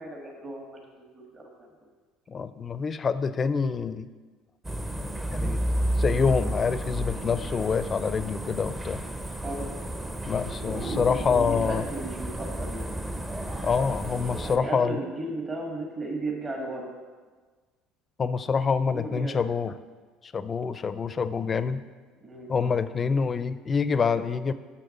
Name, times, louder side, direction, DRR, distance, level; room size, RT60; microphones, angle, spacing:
voice 1, 0.0-1.7 9.4-9.7 10.7-10.8 11.2-13.3 14.4-16.9 18.9-19.4 22.2-22.5, right 2 dB, 35° right, 0 dB, 1.5 m, -35 dB
voice 2, 2.3-4.1 5.3-5.6 6.0-9.0 10.3-11.8 13.6-15.0 18.2-19.8 20.2-21.8 22.5-24.5, left 5 dB, 35° left, 14 dB, 0.4 m, -26 dB
sound 1, 4.6-14.6, right 1 dB, 20° right, 0.7 m, -32 dB
sound 2, 9.8-12.4, right 2 dB, 60° right, 1.5 m, -40 dB
6.9 x 6.3 x 5.4 m, 1.4 s
supercardioid pair, 80°, 0 cm